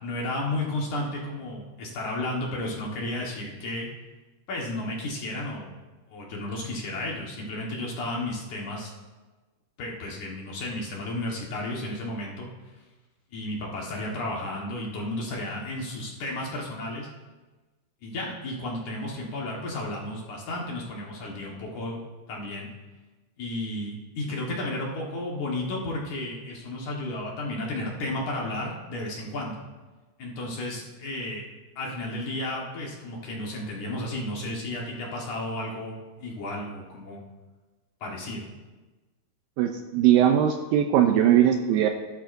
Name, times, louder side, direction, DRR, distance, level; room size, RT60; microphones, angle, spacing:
voice 1, 0.0-3.9 4.5-5.8 6.1-8.9 9.8-12.5 13.3-17.1 18.0-22.0 22.3-22.7 23.4-29.6 30.2-31.4 31.8-37.2 38.0-38.5, left 1 dB, 60° left, -2 dB, 2.6 m, -33 dB
voice 2, 39.6-41.9, right 10 dB, 85° right, 5 dB, 2.1 m, -20 dB
16.5 x 11.5 x 2.6 m, 1.2 s
omnidirectional pair, 4.6 m